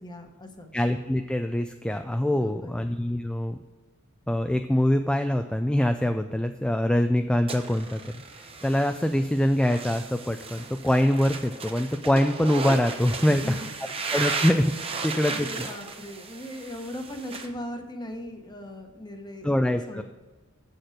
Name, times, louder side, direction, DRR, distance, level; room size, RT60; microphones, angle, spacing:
voice 1, 0.0-0.7 2.3-2.7 13.3-13.6 13.8-13.9 15.3-19.5 19.9-20.0, left 1 dB, 20° left, 5 dB, 1.0 m, -38 dB
voice 2, 0.7-3.6 4.3-13.6 14.1-14.7 15.0-15.7 19.4-20.0, left 1 dB, 5° left, 6 dB, 0.3 m, -24 dB
sound 1, 7.5-17.5, right 4 dB, 25° right, 0.9 m, -35 dB
7.7 x 6.6 x 6.4 m, 1.2 s
head